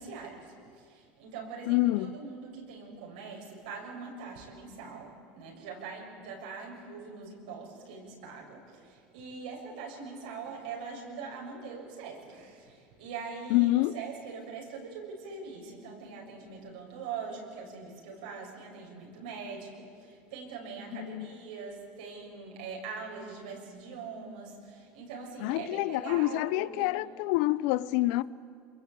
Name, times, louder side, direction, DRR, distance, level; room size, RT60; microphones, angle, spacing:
voice 1, 0.0-27.0, right 5 dB, 90° right, 7.0 m, -42 dB
voice 2, 1.7-2.1 13.5-13.9 20.9-21.3 25.4-28.2, left 17 dB, 70° left, 0.7 m, -27 dB
26.0 x 22.5 x 8.5 m
supercardioid pair, 130°, 5 cm